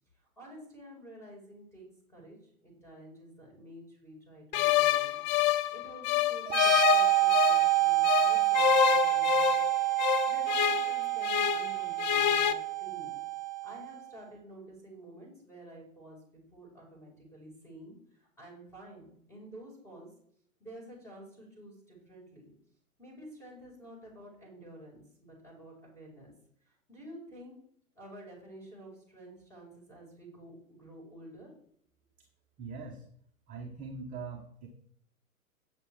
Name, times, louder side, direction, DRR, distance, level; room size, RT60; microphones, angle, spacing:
voice 1, 0.4-5.2 5.5-9.6 10.3-13.1 13.6-16.2 16.5-20.1 20.6-22.5 23.0-26.3 26.6-27.5 27.9-31.5, right 1 dB, 5° left, -2 dB, 5.1 m, -50 dB
sound 1, 4.5-7.7 8.0-11.7 12.0-12.5, left 11 dB, 30° left, 0.7 m, -27 dB
sound 2, 6.5-14.0, right 18 dB, 50° right, 0.8 m, -28 dB
voice 2, 32.6-33.0 33.5-34.7, right 4 dB, 20° right, 1 dB, 1.3 m, -42 dB
12.0 x 8.5 x 3.5 m, 0.65 s
figure-of-eight pair, 110°, 44 cm